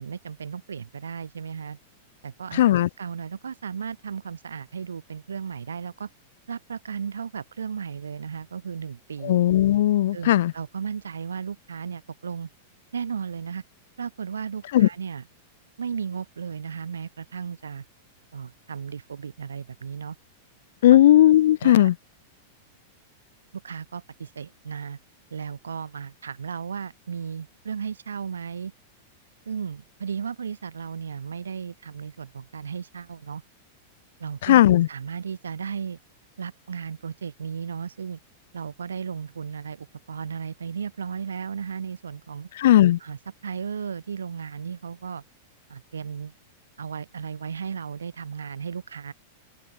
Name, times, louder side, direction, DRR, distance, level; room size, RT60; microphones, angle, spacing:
voice 1, 0.0-1.8 2.2-2.6 3.0-6.1 6.5-9.3 10.1-12.5 12.9-13.6 14.0-15.3 15.8-17.8 18.3-20.2 20.9-21.1 21.6-21.9 23.5-25.0 25.3-28.7 29.5-33.4 34.2-34.6 34.9-36.0 36.4-38.2 38.5-42.5 43.0-45.2 45.7-46.3 46.8-49.1, right 6 dB, 75° right, 7.5 m, -35 dB
voice 2, 2.5-2.9 9.2-10.5 14.7-14.9 20.8-21.9 34.4-34.9 42.6-43.0, left 13 dB, 65° left, 1.6 m, -17 dB
figure-of-eight pair, 95°, 0 cm